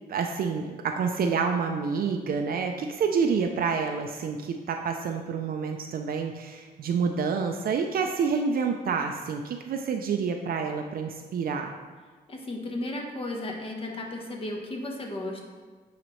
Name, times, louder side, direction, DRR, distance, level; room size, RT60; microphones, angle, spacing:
voice 1, 0.1-11.7, right 5 dB, 60° right, 4 dB, 0.4 m, -28 dB
voice 2, 12.3-15.4, left 1 dB, 35° left, 0 dB, 1.0 m, -34 dB
9.1 x 4.0 x 3.1 m, 1.4 s
cardioid pair, 120°, 17 cm